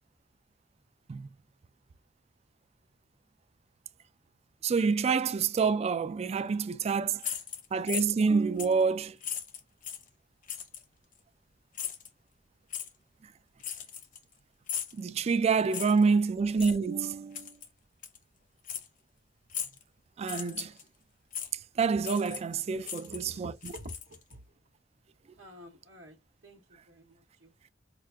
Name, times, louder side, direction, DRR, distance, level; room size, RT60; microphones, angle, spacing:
voice 1, 4.6-7.2 7.7-9.2 14.9-17.5 20.2-20.7 21.8-23.7, right 5 dB, 35° right, 0.3 m, -27 dB
sound 1, 7.2-8.3 8.6-8.8 9.2-10.1 10.5-10.8 11.7-12.1 12.7-12.9 13.6-14.3 14.7-15.0 15.7-16.1 16.6-16.8 17.3-17.7 18.0-18.2 18.7-18.9 19.5-19.8 20.2-20.8 21.3-21.5 22.0-22.6 22.8-24.3, left 8 dB, 45° left, 0.8 m, -37 dB
voice 2, 23.1-24.2 25.4-26.2 26.4-27.7, equal, 70° right, 0.9 m, -49 dB
5.8 x 2.4 x 2.3 m
head